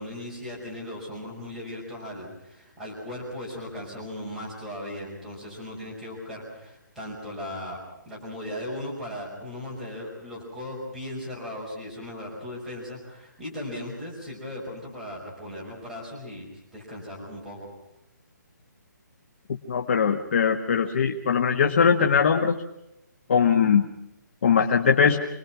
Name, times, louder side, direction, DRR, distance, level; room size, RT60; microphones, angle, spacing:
voice 1, 0.0-7.8 8.1-16.5 16.7-17.7, left 1 dB, ahead, -7 dB, 5.5 m, -37 dB
voice 2, 19.7-22.6 23.3-23.9 24.4-25.2, left 6 dB, 40° left, 4 dB, 1.4 m, -21 dB
27.0 x 21.0 x 6.0 m, 0.88 s
hypercardioid pair, 175°, 10 cm